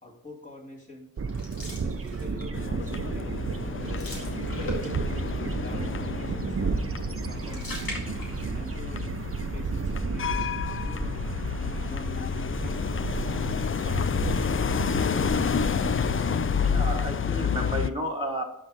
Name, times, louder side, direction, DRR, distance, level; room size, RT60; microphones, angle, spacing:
voice 1, 0.0-1.1 1.8-3.4 4.6-7.9 8.5-9.2 9.5-11.2 11.8-12.3 12.6-13.0 13.7-14.8, left 2 dB, 20° left, -3 dB, 2.7 m, -46 dB
sound 1, 1.2-16.8, right 5 dB, 40° right, 0.7 m, -33 dB
sound 2, 1.3-2.6 3.0-3.2 3.5-5.3 7.0-8.8 9.1-9.2 10.1-11.0, left 2 dB, 80° left, 2.2 m, -41 dB
sound 3, 2.5-17.9, left 7 dB, 35° left, 0.4 m, -30 dB
voice 2, 16.2-18.4, equal, 15° right, 0 dB, 1.3 m, -32 dB
11.5 x 5.0 x 4.1 m, 0.83 s
cardioid pair, 55°, 35 cm